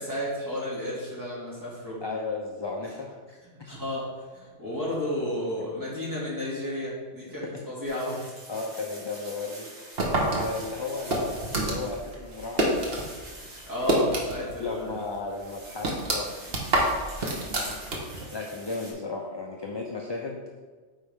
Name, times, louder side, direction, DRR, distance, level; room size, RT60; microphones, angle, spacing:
voice 1, 0.0-2.0 3.4-8.2 13.7-14.9 16.7-16.9, left 1 dB, 15° right, -8 dB, 2.4 m, -32 dB
voice 2, 2.0-3.7 7.4-7.6 8.1-8.2 8.5-9.7 10.1-12.7 14.6-16.6 17.1-17.7 18.3-20.4, left 3 dB, 30° left, 0 dB, 0.5 m, -35 dB
sound 1, 7.9-18.9, right 1 dB, 75° right, 2.1 m, -46 dB
sound 2, 10.0-13.1 13.4-14.6 14.9-15.0 15.4-18.3, right 1 dB, 60° right, 1.4 m, -27 dB
9.0 x 4.5 x 3.6 m, 1.4 s
omnidirectional pair, 1.2 m